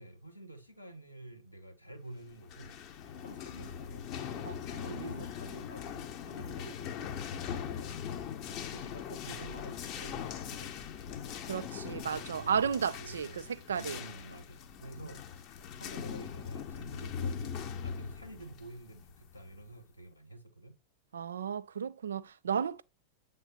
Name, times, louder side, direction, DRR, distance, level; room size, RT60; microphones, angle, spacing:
voice 1, 0.0-2.8 3.1-4.5 4.8-7.9 8.4-11.2 11.8-15.5 15.8-20.8, right 1 dB, 90° left, 1.2 m, -49 dB
sound 1, 2.3-19.7, left 8 dB, 40° left, 0.8 m, -41 dB
voice 2, 4.4-5.2 11.4-14.0 21.1-22.8, right 7 dB, 70° right, 0.4 m, -34 dB
7.9 x 3.6 x 4.1 m
figure-of-eight pair, 90°, 0 cm